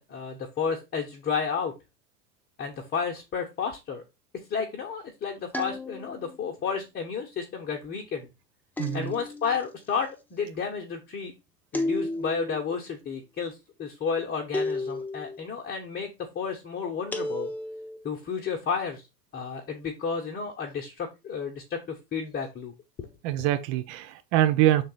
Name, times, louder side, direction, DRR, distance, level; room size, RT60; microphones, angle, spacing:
voice 1, 0.0-1.7 2.6-4.0 4.5-8.3 8.9-11.3 11.7-17.5 18.0-19.0 19.3-22.7, left 6 dB, 20° left, 1.1 m, -32 dB
sound 1, 5.5-6.4 8.8-9.6 11.7-12.6 14.5-15.4 17.1-18.0, left 2 dB, 5° left, 0.5 m, -32 dB
voice 2, 8.8-9.1 23.2-24.8, right 13 dB, 35° right, 0.9 m, -24 dB
6.2 x 4.0 x 4.1 m
figure-of-eight pair, 90°, 49 cm